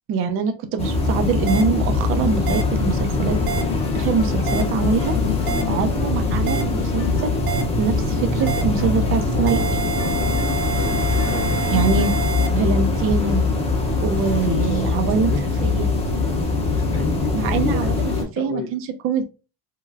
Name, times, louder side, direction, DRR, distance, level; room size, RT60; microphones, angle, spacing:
voice 1, 0.1-3.4 3.9-5.1 5.7-7.3 7.8-9.7 11.7-12.1 12.5-13.4 14.0-15.3 15.6-15.9 17.3-18.1 18.4-19.2, right 5 dB, 30° right, 7 dB, 0.5 m, -23 dB
sound 1, 0.8-18.2, left 3 dB, 15° left, 0.8 m, -22 dB
sound 2, 1.5-1.6 2.5-2.6 3.5-3.6 4.5-4.6 5.5-5.6 6.5-6.6 7.5-7.6 8.5-8.6 9.5-12.5, right 7 dB, 75° right, 0.9 m, -28 dB
sound 3, 2.5-12.2, left 13 dB, 85° left, 0.6 m, -32 dB
voice 2, 5.0-6.1 9.3-9.5 10.1-11.9 14.3-14.9 15.3-15.5 16.7-18.7, left 5 dB, 30° left, 3 dB, 0.4 m, -32 dB
3.6 x 3.2 x 2.3 m, 0.31 s
cardioid pair, 165°, 42 cm